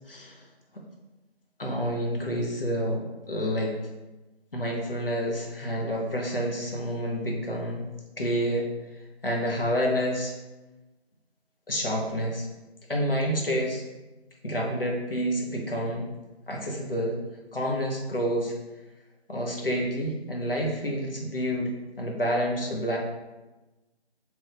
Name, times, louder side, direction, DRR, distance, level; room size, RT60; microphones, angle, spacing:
voice 1, 0.1-0.4 0.7-0.8 1.6-3.7 4.5-7.9 8.2-8.7 9.2-10.3 11.7-12.5 12.9-13.8 14.4-16.1 16.5-17.2 17.5-18.5 19.3-23.0, equal, 60° left, -1 dB, 0.7 m, -28 dB
2.9 x 2.3 x 3.2 m, 1.1 s
figure-of-eight pair, 175°, 33 cm